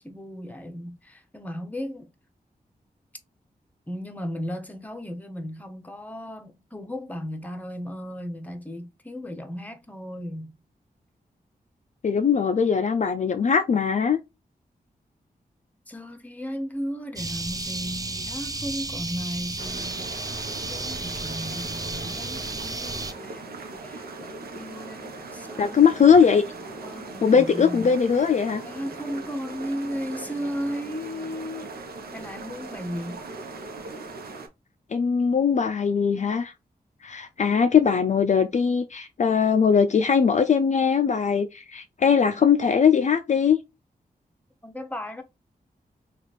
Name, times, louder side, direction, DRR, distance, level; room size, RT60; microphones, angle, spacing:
voice 1, 0.0-2.1 3.9-10.6 15.9-20.2 20.7-25.9 26.6-28.0 28.6-31.8 32.1-33.2 44.6-45.2, equal, 10° left, 0.7 m, -35 dB
voice 2, 12.0-14.2 25.6-26.4 27.2-28.6 34.9-36.5 37.0-43.6, left 6 dB, 50° left, 0.4 m, -20 dB
sound 1, 17.2-23.1, right 2 dB, 25° right, 0.5 m, -33 dB
sound 2, 19.6-34.5, right 3 dB, 75° right, 0.8 m, -39 dB
3.1 x 2.4 x 4.0 m
cardioid pair, 70°, 16 cm